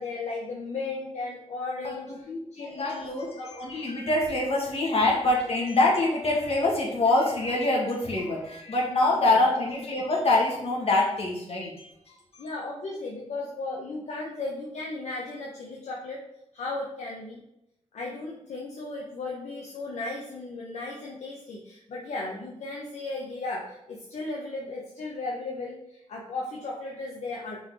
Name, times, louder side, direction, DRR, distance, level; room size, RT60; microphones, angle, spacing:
voice 1, 0.0-2.1 2.5-3.1 9.1-9.4 12.4-16.2 16.5-17.4 17.9-27.6, left 3 dB, 70° left, -3 dB, 1.0 m, -35 dB
voice 2, 2.3-12.1, left 2 dB, 55° left, -2 dB, 2.0 m, -25 dB
5.9 x 4.1 x 4.1 m, 0.81 s
cardioid pair, 80°, 12 cm